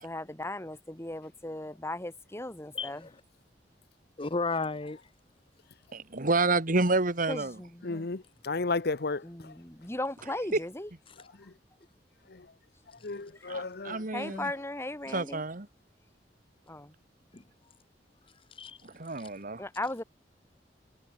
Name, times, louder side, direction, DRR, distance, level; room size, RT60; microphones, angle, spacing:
voice 1, 0.0-3.0 7.3-8.1 9.2-10.9 13.4-13.5 14.1-15.4 16.7-16.9 19.6-20.0, left 1 dB, 15° left, 2.3 m, -37 dB
voice 2, 2.7-3.1 4.2-5.0 11.1-11.2 17.3-17.4 18.5-18.8 19.1-19.3, left 3 dB, 30° left, 0.9 m, -33 dB
voice 3, 5.9-7.6 10.5-10.6 13.5-14.5 15.1-15.7 18.8-19.6, right 3 dB, 50° right, 1.8 m, -29 dB
voice 4, 7.8-9.5 12.3-12.5 13.0-14.4, left 3 dB, 60° left, 0.9 m, -34 dB
head